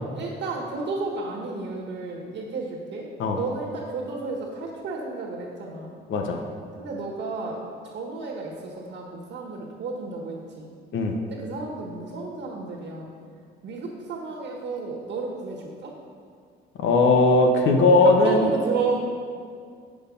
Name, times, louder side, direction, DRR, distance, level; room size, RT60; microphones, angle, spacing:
voice 1, 0.1-3.1 3.4-5.9 6.7-10.6 11.3-13.1 13.6-15.9 18.0-19.0, right 4 dB, 65° right, -2 dB, 1.5 m, -32 dB
voice 2, 6.1-6.4 10.9-11.2 16.8-18.5, left 2 dB, 80° left, 3 dB, 1.1 m, -18 dB
7.8 x 6.4 x 5.4 m, 2.1 s
cardioid pair, 90°, 20 cm